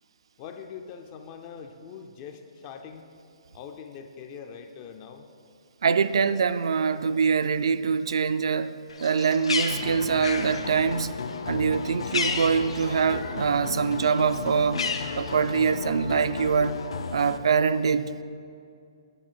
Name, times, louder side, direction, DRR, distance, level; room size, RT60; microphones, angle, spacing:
voice 1, 0.4-3.1 3.5-5.3, left 6 dB, 20° left, 0.4 m, -42 dB
voice 2, 5.8-11.2 11.5-14.9 15.2-16.8 17.1-18.1, right 6 dB, 65° right, 0.4 m, -24 dB
Bird, 8.9-13.5 13.8-15.7, left 4 dB, 85° left, 1.0 m, -33 dB
sound 1, 9.7-17.4, left 5 dB, 65° left, 0.6 m, -35 dB
9.9 x 5.7 x 6.9 m
hypercardioid pair, 170°, 3 cm